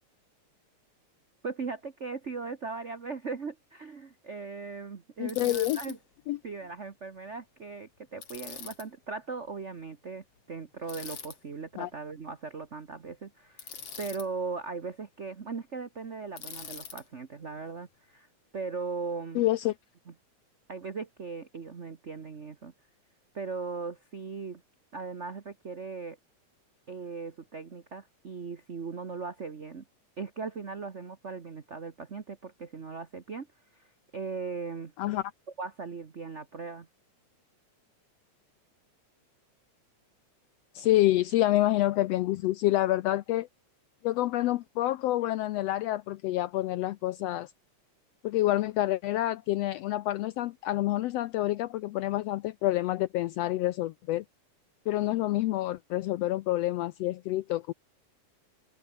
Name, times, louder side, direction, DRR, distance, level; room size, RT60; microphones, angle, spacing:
voice 1, 1.4-6.0 6.4-13.7 14.0-18.3 18.5-19.5 20.1-20.2 20.7-22.7 23.3-24.6 24.9-26.2 26.9-29.8 30.2-33.5 33.8-33.9 34.1-34.9 35.6-36.9, right 4 dB, 65° right, 0.6 m, -38 dB
voice 2, 5.2-5.8 6.3-6.4 11.8-11.9 19.3-19.7 35.0-35.2 40.7-43.5 44.0-47.5 48.2-54.2 54.9-57.7, left 15 dB, 80° left, 1.5 m, -28 dB
Bicycle, 5.3-6.0 8.2-8.9 10.9-11.4 13.6-14.3 16.4-17.0, left 7 dB, 55° left, 3.6 m, -42 dB
omnidirectional pair, 3.4 m